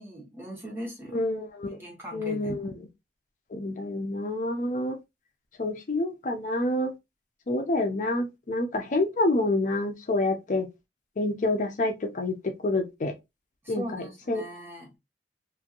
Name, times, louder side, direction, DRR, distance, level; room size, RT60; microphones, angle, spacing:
voice 1, 0.0-1.2 1.7-2.7 13.6-14.9, right 1 dB, 15° right, 1.1 m, -40 dB
voice 2, 1.1-1.8 2.1-2.7 3.5-5.0 5.6-6.9 7.5-10.7 11.2-13.1 13.7-14.4, left 2 dB, 45° left, 0.5 m, -28 dB
3.0 x 2.5 x 2.3 m
head